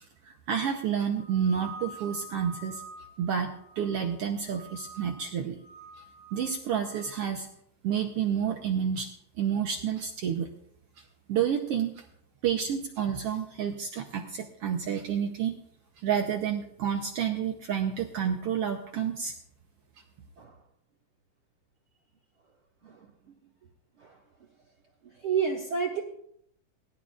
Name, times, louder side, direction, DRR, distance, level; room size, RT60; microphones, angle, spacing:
voice 1, 0.2-2.8 3.2-5.6 6.3-7.5 7.8-9.1 9.4-10.5 11.3-12.0 12.4-15.6 16.0-19.3, right 8 dB, 75° right, 3 dB, 1.4 m, -29 dB
sound 1, 1.2-4.1 4.5-5.2 5.6-7.1, right 2 dB, 55° left, 6.7 m, -47 dB
voice 2, 22.8-23.3 24.0-24.2 25.0-26.0, right 6 dB, 50° right, -3 dB, 1.8 m, -31 dB
19.0 x 13.0 x 2.5 m, 0.73 s
omnidirectional pair, 3.6 m